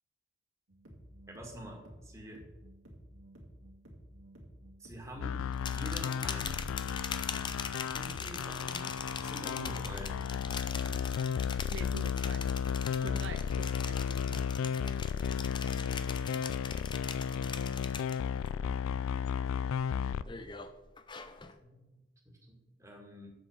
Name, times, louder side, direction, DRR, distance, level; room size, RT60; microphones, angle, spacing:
sound 1, 0.7-19.1, equal, 85° right, 2.4 m, -52 dB
voice 1, 1.3-2.4 4.8-5.4 5.7-6.7 7.9-10.2 15.6-16.3 20.0-20.4 21.6-23.3, right 1 dB, 15° right, 1 dB, 1.8 m, -47 dB
sound 2, 5.2-20.2, left 7 dB, 90° left, 0.3 m, -34 dB
sound 3, 5.5-18.5 18.8-19.3 19.7-21.6, left 6 dB, 25° left, 0.5 m, -42 dB
voice 2, 11.7-12.4 13.0-14.5, right 4 dB, 65° right, 9 dB, 0.5 m, -45 dB
7.9 x 6.1 x 7.2 m, 1.1 s
head